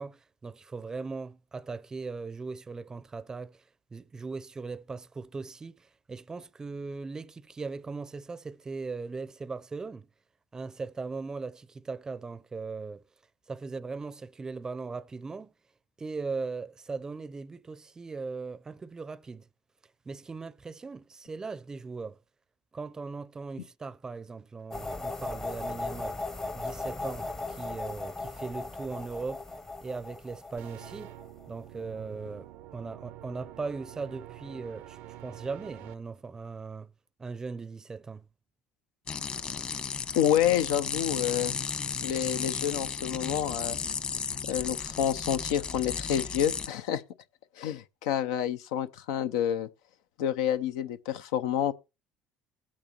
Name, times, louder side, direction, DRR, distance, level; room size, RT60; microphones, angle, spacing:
voice 1, 0.0-3.6 3.9-10.1 10.5-13.0 13.5-15.5 16.0-19.5 20.1-22.2 22.7-26.2 26.5-29.5 29.8-31.1 31.5-36.9 37.2-38.3, right 4 dB, 20° right, 0.5 m, -39 dB
sound 1, 24.7-31.6, left 2 dB, 20° left, 0.7 m, -37 dB
sound 2, 30.6-35.9, right 14 dB, 75° right, 0.5 m, -47 dB
sound 3, 39.1-46.7, left 6 dB, 40° left, 1.3 m, -34 dB
voice 2, 40.1-41.5 42.0-43.8 44.5-47.0 47.6-49.7 50.2-51.7, left 10 dB, 90° left, 0.6 m, -28 dB
20.0 x 8.6 x 2.9 m
supercardioid pair, 90°, 3 cm